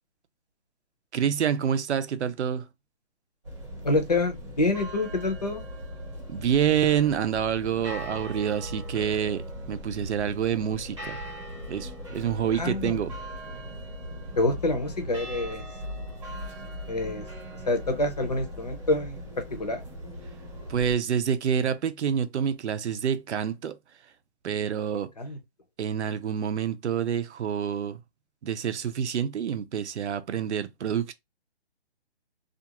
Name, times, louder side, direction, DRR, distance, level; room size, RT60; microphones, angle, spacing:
voice 1, 1.1-2.7 6.3-11.2 11.7-13.1 20.7-23.8 24.4-25.1 25.8-28.0 28.4-31.1, right 8 dB, 85° right, 0.6 m, -27 dB
sound 1, 3.4-20.9, equal, 30° right, 0.9 m, -39 dB
voice 2, 3.8-5.6 12.5-13.0 14.4-15.6 16.9-17.3 17.7-19.2 19.5-19.8 25.2-25.4, left 2 dB, 40° left, 0.6 m, -27 dB
2.5 x 2.3 x 2.9 m
hypercardioid pair, 180°, 33 cm